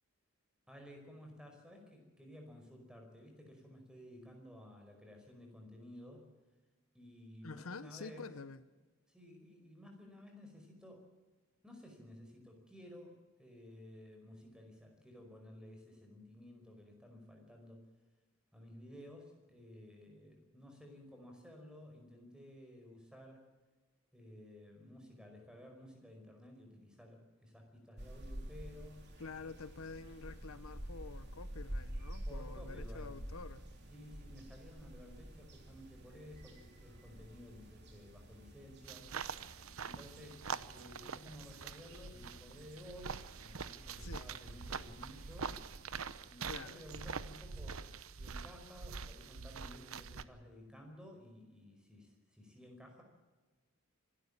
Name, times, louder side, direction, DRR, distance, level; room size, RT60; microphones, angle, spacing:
voice 1, 0.7-6.3 6.9-8.3 9.1-11.1 11.6-17.9 18.5-23.4 24.1-29.1 32.3-33.1 33.9-39.1 39.8-45.5 46.3-53.0, left 1 dB, 5° right, 3 dB, 5.0 m, -54 dB
voice 2, 7.4-8.6 29.2-33.6 43.9-44.3 46.5-46.8, left 4 dB, 75° left, 14 dB, 0.9 m, -48 dB
sound 1, 28.0-46.2, equal, 50° right, 3.2 m, -49 dB
sound 2, 38.8-50.2, right 5 dB, 70° right, 0.9 m, -45 dB
26.0 x 12.5 x 8.6 m, 1.2 s
head